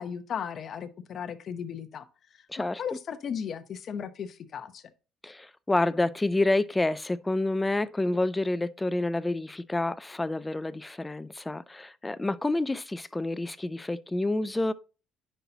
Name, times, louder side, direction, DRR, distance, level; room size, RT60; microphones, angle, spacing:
voice 1, 0.0-2.1 2.6-4.8, left 7 dB, 45° left, 0.8 m, -36 dB
voice 2, 2.5-2.8 5.2-14.7, left 2 dB, 10° left, 0.4 m, -28 dB
10.0 x 5.5 x 2.8 m
cardioid pair, 135°, 0 cm